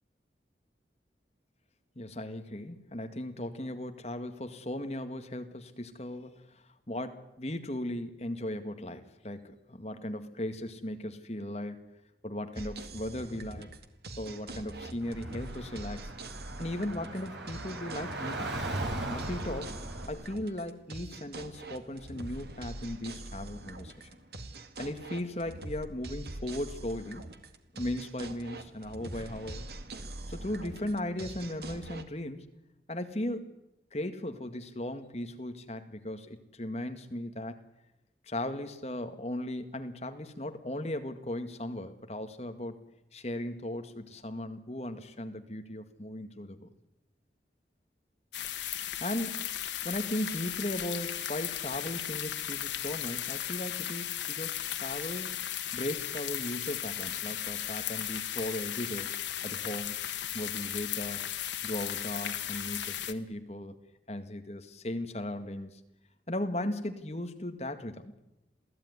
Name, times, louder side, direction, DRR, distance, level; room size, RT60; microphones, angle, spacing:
voice 1, 2.0-11.9 12.2-13.7 14.2-16.1 16.6-18.5 19.1-19.8 20.1-24.1 24.8-27.3 27.7-29.6 30.3-32.5 32.9-33.5 33.9-37.6 38.2-42.8 43.1-46.7 49.0-49.5 49.8-55.4 55.7-59.1 59.4-60.0 60.3-61.3 61.6-63.7 64.1-65.8 66.3-68.1, left 1 dB, 35° left, 7 dB, 2.0 m, -37 dB
sound 1, 12.5-32.0, right 2 dB, 65° right, 2.1 m, -44 dB
Car / Traffic noise roadway noise, 15.0-20.1, right 2 dB, 80° right, 5.0 m, -38 dB
sound 2, 48.3-63.1, left 11 dB, 90° left, 1.7 m, -36 dB
27.5 x 17.0 x 9.7 m, 0.91 s
head